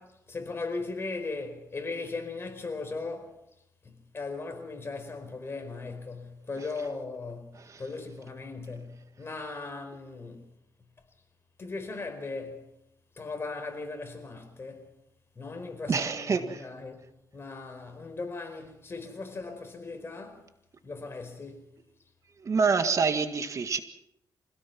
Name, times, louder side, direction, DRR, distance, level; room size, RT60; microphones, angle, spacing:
voice 1, 0.0-3.4 3.8-10.5 11.6-12.7 13.1-14.9 15.3-20.5 20.8-21.7, left 3 dB, 35° left, 4.8 m, -38 dB
voice 2, 15.9-16.6 22.4-23.8, right 5 dB, 45° right, 1.8 m, -26 dB
26.0 x 17.5 x 6.1 m
cardioid pair, 95°, 7 cm